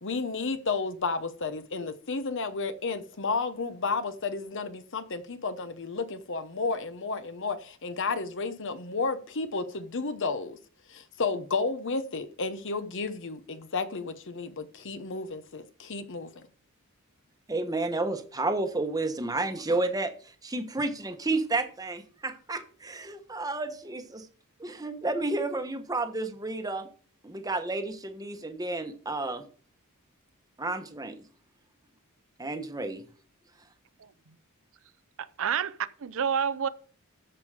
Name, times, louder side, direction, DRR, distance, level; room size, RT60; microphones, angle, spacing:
voice 1, 0.0-10.6 10.9-16.4, left 4 dB, 55° left, 1.0 m, -32 dB
voice 2, 17.5-24.3 24.6-26.9 27.2-29.5 30.6-31.2 32.4-33.0, right 2 dB, 15° right, 1.1 m, -31 dB
voice 3, 35.2-36.7, right 7 dB, 65° right, 0.6 m, -29 dB
14.0 x 5.4 x 4.9 m
head